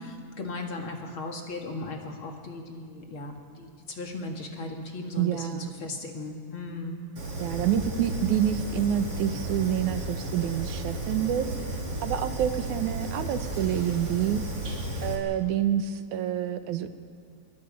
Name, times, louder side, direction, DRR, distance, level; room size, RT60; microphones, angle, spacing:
voice 1, 0.4-7.0, left 2 dB, 45° left, 2 dB, 2.7 m, -37 dB
voice 2, 5.2-5.7 7.4-11.5 12.0-14.4 15.0-16.9, right 10 dB, 85° right, 9 dB, 2.5 m, -27 dB
Fire, 7.2-15.2, right 1 dB, 50° right, 4.2 m, -33 dB
27.0 x 22.5 x 5.3 m, 2.1 s
omnidirectional pair, 3.4 m